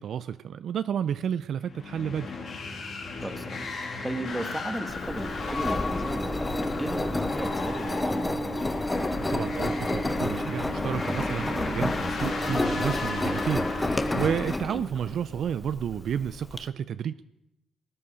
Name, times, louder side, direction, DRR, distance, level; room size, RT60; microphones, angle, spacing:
voice 1, 0.0-2.3 9.2-17.2, right 8 dB, 65° right, 14 dB, 0.4 m, -31 dB
sound 1, 1.6-14.5, left 4 dB, 60° left, 2.8 m, -35 dB
voice 2, 3.2-3.6 4.0-8.6 14.7-14.8, right 1 dB, 10° right, 7 dB, 1.4 m, -35 dB
Engine, 4.9-16.6, left 1 dB, 15° left, 0.8 m, -30 dB
18.0 x 9.6 x 5.1 m, 0.89 s
cardioid pair, 90°, 0 cm